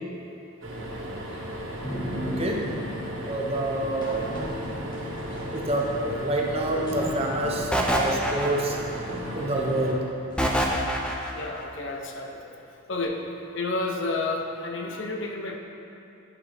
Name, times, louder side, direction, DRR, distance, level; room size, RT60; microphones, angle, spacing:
sound 1, 0.6-9.9, right 1 dB, 60° right, 1.3 m, -35 dB
sound 2, 1.8-3.1 4.0-6.4 6.7-8.0 8.4-8.5 8.9-9.9 10.3-10.6 11.1-11.5, equal, 20° left, 1.4 m, -37 dB
voice 1, 2.2-2.7 3.2-4.3 5.5-8.8 9.3-10.1, right 1 dB, 30° right, 0 dB, 0.7 m, -27 dB
sound 3, 7.7-9.0 10.4-11.5, equal, 5° left, 0.5 m, -25 dB
voice 2, 11.3-12.5 12.9-13.2 13.5-15.6, left 2 dB, 55° left, 2 dB, 0.7 m, -31 dB
10.5 x 6.9 x 3.4 m, 2.8 s
head